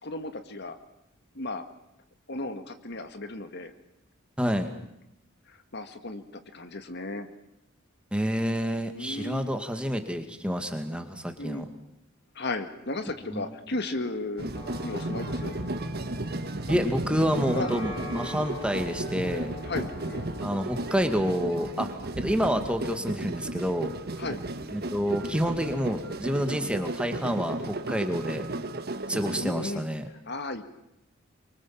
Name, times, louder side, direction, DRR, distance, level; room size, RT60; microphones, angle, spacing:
voice 1, 0.0-0.8 1.4-1.6 2.3-3.7 5.5-6.2 6.5-7.3 8.9-9.6 11.4-11.7 12.4-14.5 14.8-15.6 17.5-17.7 19.6-20.3 24.2-24.4 29.4-29.9 30.1-30.6, left 2 dB, 55° left, 8 dB, 1.9 m, -35 dB
voice 2, 4.4-4.7 8.1-11.7 13.3-13.4 16.7-19.5 20.4-21.9 22.2-23.9 24.7-28.5 29.1-30.0, equal, 5° right, 6 dB, 2.1 m, -28 dB
sound 1, 14.4-29.5, right 2 dB, 50° right, 1.7 m, -34 dB
sound 2, 14.5-21.8, left 2 dB, 25° left, 5.7 m, -44 dB
25.0 x 24.0 x 7.4 m, 0.85 s
head